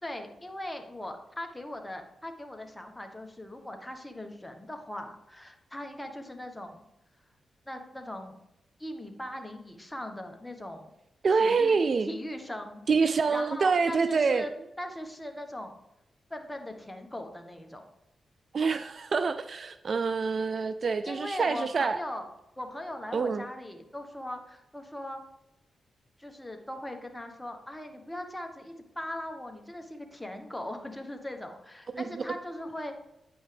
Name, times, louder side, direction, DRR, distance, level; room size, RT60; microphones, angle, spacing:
voice 1, 0.0-6.8 7.7-8.4 8.8-10.9 11.4-12.8 13.3-14.5 14.8-15.7 16.3-17.8 21.1-22.3 22.6-25.2 26.2-32.9, left 1 dB, 10° left, 1.4 m, -39 dB
voice 2, 11.2-12.1 12.9-14.5 18.5-22.0 23.1-23.4 32.0-32.2, right 5 dB, 55° right, 0.4 m, -26 dB
9.2 x 5.4 x 3.5 m
supercardioid pair, 50°, 0 cm